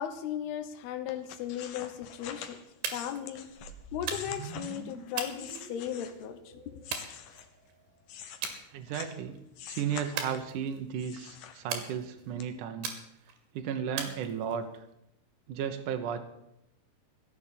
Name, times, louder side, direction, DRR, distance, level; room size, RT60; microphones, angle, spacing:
voice 1, 0.0-2.6 2.9-3.5 3.9-6.6, left 10 dB, 85° left, 9 dB, 3.1 m, -36 dB
sound 1, 1.1-6.4 6.8-9.2 9.5-10.6 11.0-12.0 12.4-12.5, left 9 dB, 65° left, 2.5 m, -46 dB
sound 2, 2.8-3.3 4.1-4.5 5.2-6.1 6.9-7.7 8.4-8.6 9.0-9.4 10.2-10.9 11.7-12.3 12.8-13.4 14.0-14.8, right 6 dB, 90° right, 4.0 m, -38 dB
sound 3, 3.6-7.8, right 4 dB, 45° right, 1.5 m, -47 dB
voice 2, 8.7-9.4 9.7-12.9 13.5-14.7 15.5-16.2, right 8 dB, 70° right, 6 dB, 2.2 m, -34 dB
16.5 x 7.4 x 10.0 m, 0.81 s
omnidirectional pair, 4.5 m